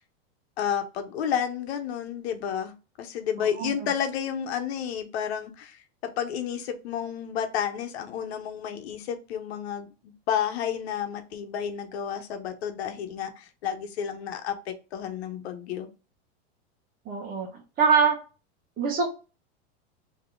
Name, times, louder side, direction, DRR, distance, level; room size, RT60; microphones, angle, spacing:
voice 1, 0.6-15.9, left 8 dB, 75° left, 7 dB, 1.0 m, -31 dB
voice 2, 3.4-3.9 17.1-17.5 17.8-18.2 18.8-19.1, right 6 dB, 30° right, 3 dB, 1.1 m, -24 dB
3.6 x 3.0 x 3.7 m, 0.33 s
supercardioid pair, 145°, 32 cm